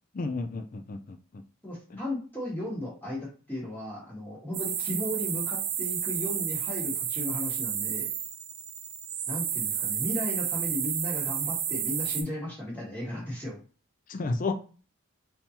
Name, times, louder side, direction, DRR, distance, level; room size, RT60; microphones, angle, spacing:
voice 1, 0.1-1.4 1.9-2.0 14.1-14.5, left 3 dB, 35° left, 6 dB, 0.4 m, -32 dB
voice 2, 1.6-8.1 9.3-13.6, left 1 dB, 10° left, -6 dB, 1.6 m, -35 dB
sound 1, 4.5-12.2, right 9 dB, 70° right, 0.6 m, -31 dB
3.6 x 2.8 x 2.9 m, 0.38 s
head